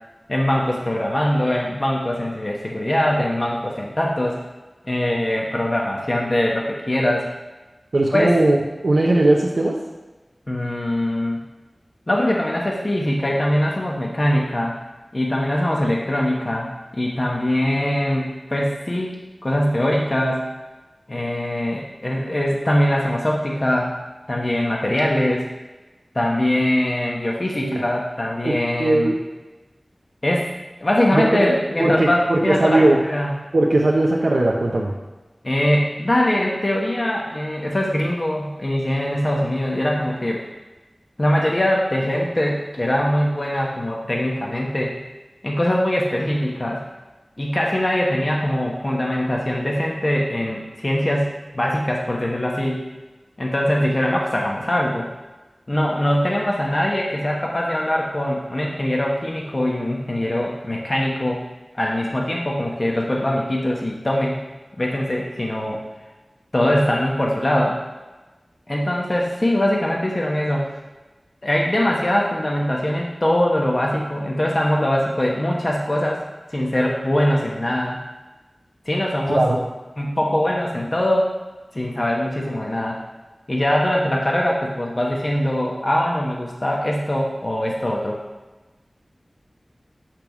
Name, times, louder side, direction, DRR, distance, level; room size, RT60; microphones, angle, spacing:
voice 1, 0.3-4.4 4.8-7.3 8.1-8.4 10.5-11.4 12.1-14.8 15.1-19.1 19.4-20.4 21.1-24.0 24.3-25.5 26.1-29.1 30.2-30.5 30.8-33.3 35.4-40.4 41.2-44.9 45.4-46.8 47.4-51.3 51.5-52.8 53.4-55.1 55.7-61.4 61.7-64.4 64.8-65.8 66.5-67.8 68.7-70.7 71.4-76.2 76.5-78.0 78.8-79.5 80.0-81.3 81.7-83.0 83.5-88.2, left 1 dB, 40° left, -2 dB, 1.1 m, -22 dB
voice 2, 7.9-8.6 8.8-9.8 27.6-27.8 28.4-29.2 31.1-31.4 31.8-33.0 33.5-34.9 79.3-79.6, right 2 dB, 75° right, -3 dB, 0.8 m, -18 dB
8.7 x 3.5 x 5.9 m, 1.1 s
wide cardioid pair, 50°, 0 cm